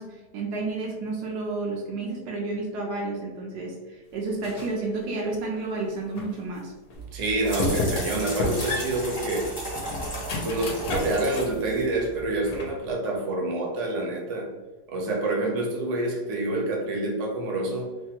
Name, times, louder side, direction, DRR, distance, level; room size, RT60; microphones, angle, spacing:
voice 1, 0.0-6.7, right 3 dB, 75° right, 0 dB, 1.1 m, -31 dB
sound 1, 4.4-4.8 5.3-6.4 6.9-7.0 7.6-8.1 8.4-11.6 12.0-12.9, left 2 dB, 70° left, 1.0 m, -31 dB
sound 2, 6.9-12.5, right 1 dB, 20° left, 0.7 m, -35 dB
voice 2, 7.1-9.5 10.4-14.5 14.9-17.9, right 2 dB, 55° right, -1 dB, 0.9 m, -27 dB
3.2 x 2.2 x 2.8 m, 1.2 s
omnidirectional pair, 1.8 m